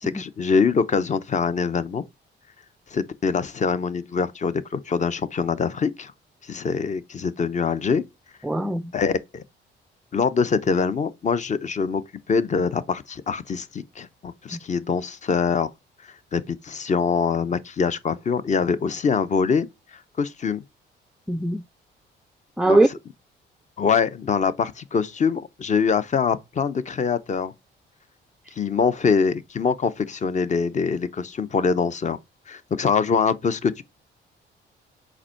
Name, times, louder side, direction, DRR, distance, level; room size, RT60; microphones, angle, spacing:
voice 1, 0.0-2.0 2.9-6.1 6.4-8.0 8.9-9.4 10.1-12.0 12.3-15.7 16.3-19.7 20.2-20.6 22.7-22.8 23.8-27.5 28.6-32.2 32.5-33.8, left 5 dB, 35° left, 0.7 m, -24 dB
voice 2, 8.4-8.8 14.5-14.6 21.3-21.6 22.6-22.9, right 2 dB, ahead, 0.3 m, -20 dB
4.9 x 4.4 x 4.4 m
cardioid pair, 90°, 20 cm